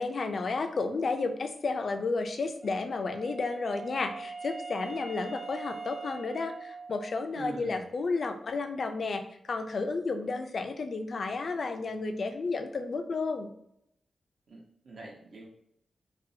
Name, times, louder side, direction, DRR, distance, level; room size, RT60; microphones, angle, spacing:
voice 1, 0.0-13.5, left 3 dB, 60° left, 6 dB, 0.3 m, -32 dB
Wind instrument woodwind instrument, 2.6-7.4, right 4 dB, 20° right, 0.4 m, -42 dB
voice 2, 7.3-7.8 14.5-15.5, right 3 dB, 70° right, -2 dB, 0.9 m, -42 dB
4.0 x 2.1 x 2.6 m, 0.75 s
wide cardioid pair, 100°, 0 cm